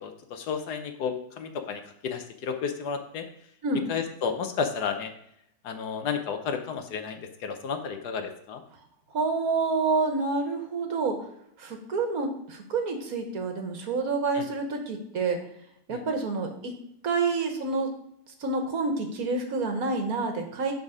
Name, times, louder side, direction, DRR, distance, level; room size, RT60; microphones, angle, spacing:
voice 1, 0.0-3.2 3.9-5.1 5.6-8.6 14.3-14.4 15.9-16.0, left 6 dB, 70° left, 7 dB, 1.3 m, -32 dB
voice 2, 9.1-11.2 11.6-15.4 15.9-16.8 17.0-17.9 18.4-20.7, right 3 dB, 55° right, 4 dB, 1.5 m, -28 dB
11.0 x 4.1 x 4.9 m, 0.75 s
omnidirectional pair, 1.9 m